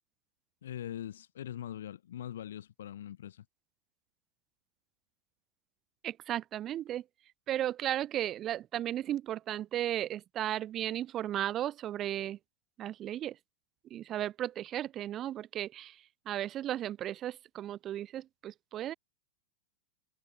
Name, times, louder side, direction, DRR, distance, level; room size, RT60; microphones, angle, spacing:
voice 1, 0.6-3.4, left 11 dB, 60° left, 5.6 m, -42 dB
voice 2, 6.0-7.0 7.5-12.4 12.8-13.4 13.9-18.9, right 12 dB, 30° right, 2.9 m, -35 dB
figure-of-eight pair, 90°, 0 cm